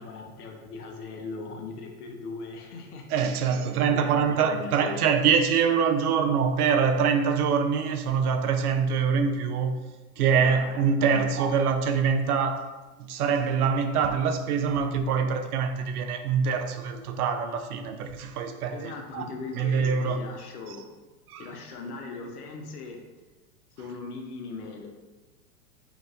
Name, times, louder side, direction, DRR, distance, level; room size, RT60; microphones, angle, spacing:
voice 1, 0.0-5.1 10.4-10.7 11.1-11.4 18.7-20.8 21.4-23.0 23.8-24.9, left 4 dB, 70° left, 0.8 m, -39 dB
voice 2, 3.1-9.8 10.2-12.7 13.0-19.2 19.6-20.2 20.7-20.8 21.3-21.4, right 6 dB, 70° right, 0.6 m, -24 dB
4.5 x 2.5 x 2.5 m
hypercardioid pair, 110°, 47 cm